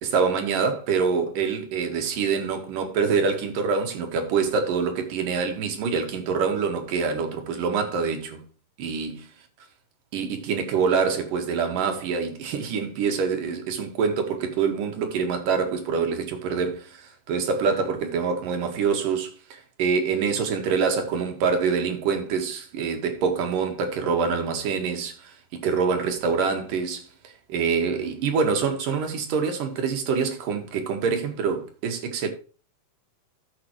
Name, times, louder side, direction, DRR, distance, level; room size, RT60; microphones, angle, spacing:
voice 1, 0.0-8.4 8.8-9.2 10.1-32.3, right 5 dB, 60° right, 3.2 m, -25 dB
13.5 x 7.8 x 3.1 m
omnidirectional pair, 4.6 m